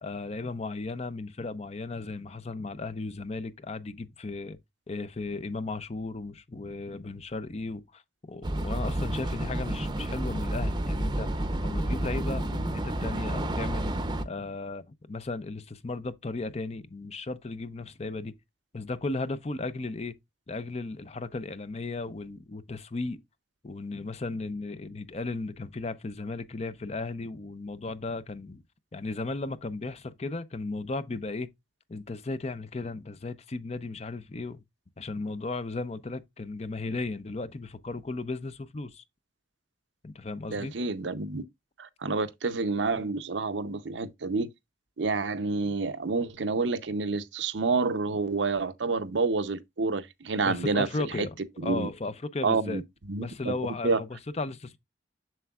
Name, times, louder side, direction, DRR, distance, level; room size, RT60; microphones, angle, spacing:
voice 1, 0.0-4.6 4.9-14.0 14.2-18.3 18.7-20.1 20.5-23.2 23.6-28.6 28.9-31.5 31.9-34.6 35.0-39.0 40.0-40.7 50.5-52.8 53.2-54.8, left 3 dB, 35° left, 0.6 m, -35 dB
sound 1, 8.4-14.2, right 1 dB, 25° right, 0.7 m, -30 dB
voice 2, 40.5-41.4 41.8-44.5 45.0-51.3 51.6-51.9 52.4-52.8 53.1-53.5 53.8-54.0, right 4 dB, 85° right, 0.7 m, -28 dB
7.5 x 6.7 x 2.4 m
head